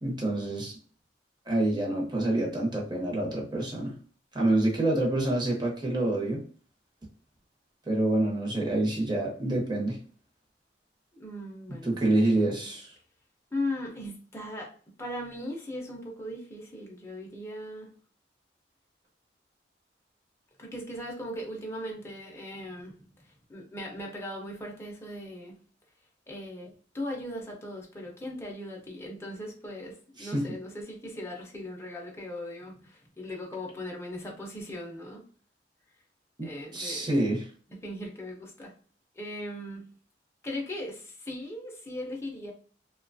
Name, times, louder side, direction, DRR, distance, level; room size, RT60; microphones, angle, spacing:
voice 1, 0.0-0.7 1.5-4.0 4.3-6.4 7.9-10.0 11.8-12.9 30.2-30.4 36.4-37.5, right 1 dB, 25° right, 0.8 m, -27 dB
voice 2, 11.2-12.7 13.5-14.7 15.0-17.9 20.6-22.9 23.2-25.6 26.3-35.2 36.4-37.1 37.7-38.7 39.1-39.9 40.4-42.5, left 1 dB, 15° left, 0.5 m, -38 dB
2.7 x 2.2 x 2.5 m
head